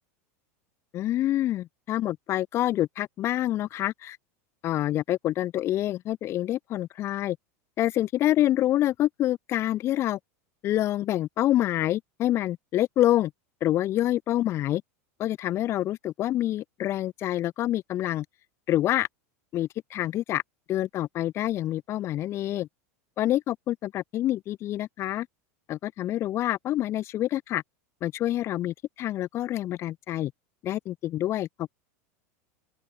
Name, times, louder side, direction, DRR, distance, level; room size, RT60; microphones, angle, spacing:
voice 1, 0.9-4.2 4.6-7.4 7.8-10.2 10.6-13.3 13.6-14.8 15.2-18.3 18.7-19.1 19.5-20.4 20.7-22.7 23.2-25.3 25.7-27.6 28.0-30.3 30.6-31.8, left 13 dB, 30° left, 1.9 m, -27 dB
open air
supercardioid pair, 155°, 8 cm